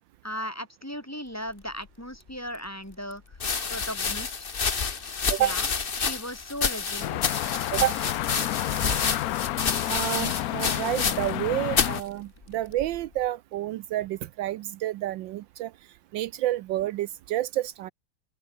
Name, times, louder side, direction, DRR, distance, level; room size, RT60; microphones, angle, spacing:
voice 1, 0.2-3.2 3.7-4.5 5.4-5.7 6.0-7.3, equal, 5° left, 4.8 m, -37 dB
sound 1, 2.3-2.4 3.3-11.4 11.7-12.0 12.8-13.2, left 5 dB, 35° left, 1.3 m, -29 dB
sound 2, 7.0-12.0, left 15 dB, 75° left, 0.8 m, -30 dB
voice 2, 9.9-15.7 16.1-17.9, right 14 dB, 80° right, 1.3 m, -29 dB
open air
omnidirectional pair, 2.1 m